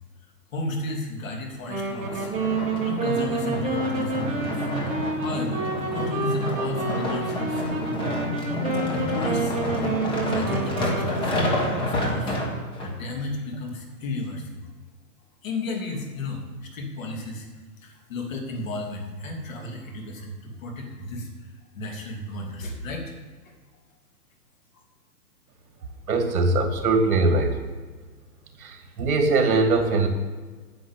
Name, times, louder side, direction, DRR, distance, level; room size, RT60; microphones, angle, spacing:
voice 1, 0.5-2.3 2.8-4.6 5.2-8.0 8.9-12.4 12.8-14.7 15.4-17.5 17.8-21.5 21.7-23.1 24.7-24.8, left 2 dB, 55° left, 1 dB, 3.1 m, -33 dB
Wind instrument woodwind instrument, 1.7-11.2, right 3 dB, 15° right, 1.4 m, -29 dB
sound 1, 1.9-12.9 13.5-13.6, equal, 10° left, 1.3 m, -29 dB
voice 2, 26.1-27.6 28.6-30.1, right 3 dB, 60° right, 4 dB, 2.4 m, -21 dB
10.0 x 6.3 x 8.3 m, 1.4 s
hypercardioid pair, 155°, 49 cm